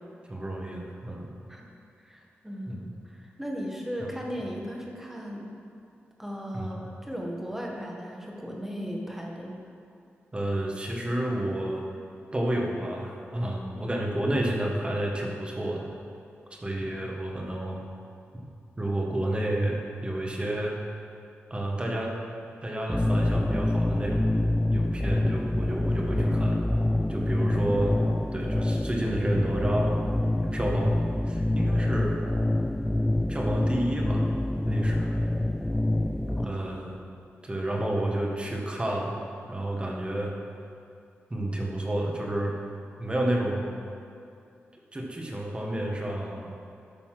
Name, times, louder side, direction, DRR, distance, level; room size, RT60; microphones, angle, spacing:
voice 1, 0.3-1.3 2.7-2.9 4.0-4.1 6.5-6.8 10.3-11.8 12.3-15.9 16.5-17.8 18.8-20.8 21.5-22.1 22.6-24.3 24.7-26.6 27.1-27.9 28.3-30.0 30.4-31.0 31.3-32.1 33.3-34.3 34.6-35.2 36.4-37.0 37.4-39.2 39.5-40.3 41.3-42.5 43.0-43.7 44.9-46.5, right 1 dB, 25° right, -1 dB, 1.6 m, -30 dB
voice 2, 2.0-5.5 6.2-9.6 36.4-36.7, equal, 5° right, -1 dB, 1.7 m, -37 dB
sound 1, 22.9-36.5, left 1 dB, 10° left, 0.3 m, -26 dB
12.5 x 4.1 x 5.9 m, 2.5 s
cardioid pair, 65°, 4 cm